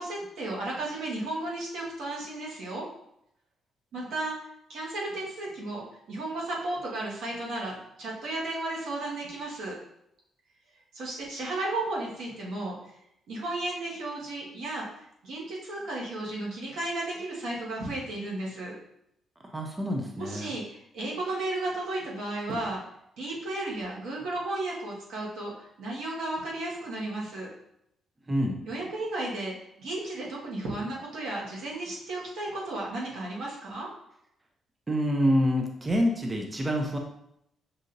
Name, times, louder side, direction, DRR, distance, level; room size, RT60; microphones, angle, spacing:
voice 1, 0.0-2.8 3.9-4.3 4.7-9.7 10.9-12.9 13.3-14.9 15.2-18.8 20.2-22.8 23.2-27.5 28.7-29.5 29.8-33.9, right 2 dB, 80° right, -4 dB, 1.4 m, -34 dB
voice 2, 19.4-20.5 28.3-28.6 34.9-37.0, equal, 15° right, 1 dB, 0.4 m, -27 dB
6.2 x 2.8 x 2.6 m, 0.76 s
cardioid pair, 150°, 0 cm